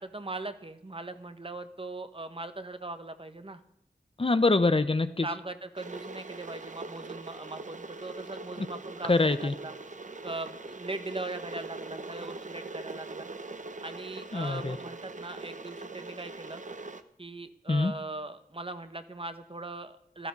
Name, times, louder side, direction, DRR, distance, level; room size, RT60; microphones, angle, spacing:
voice 1, 0.0-3.6 5.2-9.7 10.2-13.3 13.8-16.6 17.2-20.3, right 2 dB, 35° right, 9 dB, 1.3 m, -40 dB
voice 2, 4.2-5.3 8.6-8.7 9.1-9.5 14.3-14.8 17.7-17.9, left 3 dB, 35° left, 11 dB, 0.8 m, -24 dB
Water / Boiling, 5.8-17.0, right 3 dB, 50° right, 1.0 m, -42 dB
16.5 x 13.0 x 5.4 m, 0.71 s
wide cardioid pair, 70°, 16 cm